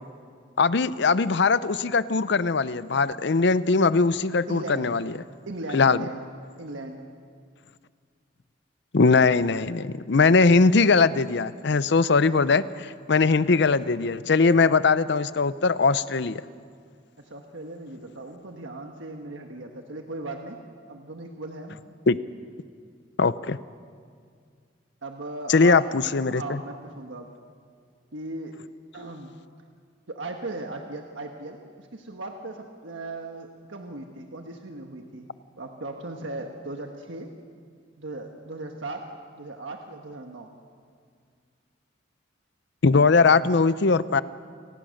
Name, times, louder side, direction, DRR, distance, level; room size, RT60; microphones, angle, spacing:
voice 1, 0.6-5.1 5.7-6.0 8.9-16.4 22.1-22.2 23.2-23.6 25.5-26.6 42.8-44.2, left 4 dB, 60° left, 15 dB, 0.6 m, -20 dB
voice 2, 4.5-5.0 5.4-6.2 6.6-7.0 17.2-20.6 20.9-21.8 25.0-26.0 26.3-27.3 28.1-28.5 28.9-29.4 30.1-35.3 35.6-37.3 38.0-39.1 39.4-40.5, right 2 dB, 70° right, 3 dB, 1.4 m, -37 dB
29.0 x 19.0 x 6.5 m, 2.2 s
head